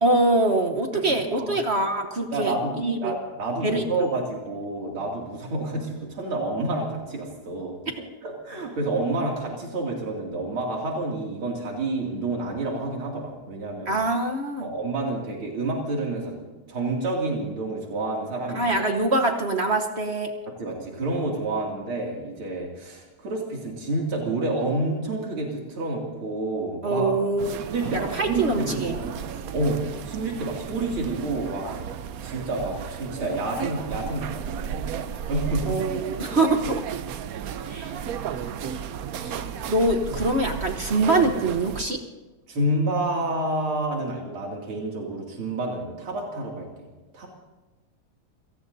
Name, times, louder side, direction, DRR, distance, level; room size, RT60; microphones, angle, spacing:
voice 1, 0.0-3.1 3.6-4.1 13.9-14.7 18.5-20.3 26.8-27.6 27.9-29.0 35.6-36.8 37.7-38.0 39.2-39.4 39.7-42.0, right 2 dB, 45° right, 5 dB, 1.0 m, -24 dB
voice 2, 0.9-1.6 2.3-2.8 3.0-14.0 14.6-16.4 16.7-18.7 20.6-27.2 27.6-29.2 29.5-31.7 32.2-34.7 35.3-35.8 42.5-46.9 47.1-47.3, right 2 dB, 90° right, -2 dB, 3.4 m, -29 dB
sound 1, 27.4-41.8, right 7 dB, 70° right, 0.8 m, -33 dB
28.5 x 18.5 x 2.7 m, 1.2 s
omnidirectional pair, 2.3 m